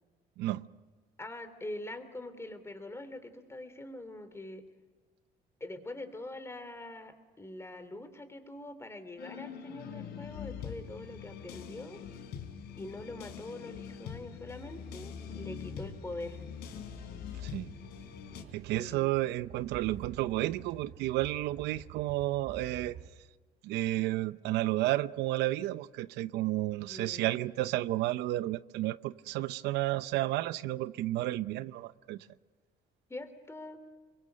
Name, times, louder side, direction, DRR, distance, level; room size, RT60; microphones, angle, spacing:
voice 1, 1.2-4.6 5.6-12.0 12.8-16.4 18.7-19.2 26.9-27.3 33.1-33.8, left 1 dB, 15° left, 3.1 m, -44 dB
sound 1, 9.2-18.4, left 8 dB, 80° left, 3.9 m, -43 dB
sound 2, 14.4-23.1, right 8 dB, 70° right, 3.2 m, -51 dB
voice 2, 17.4-17.7 18.5-23.0 23.6-32.2, right 16 dB, 85° right, 0.7 m, -32 dB
27.0 x 23.0 x 6.6 m
cardioid pair, 110°, 17 cm